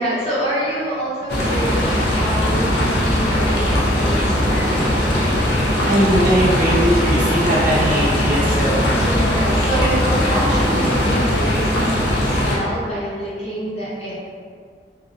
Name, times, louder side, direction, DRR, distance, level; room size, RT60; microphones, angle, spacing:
voice 1, 0.0-4.9 8.9-14.1, right 1 dB, 40° left, -9 dB, 0.8 m, -27 dB
sound 1, 1.3-12.6, left 1 dB, 65° left, 0.5 m, -19 dB
sound 2, 1.6-11.4, equal, ahead, 0.6 m, -34 dB
voice 2, 5.9-8.9 10.3-10.4, right 1 dB, 50° right, -8 dB, 0.7 m, -19 dB
2.7 x 2.1 x 2.4 m, 2.1 s
head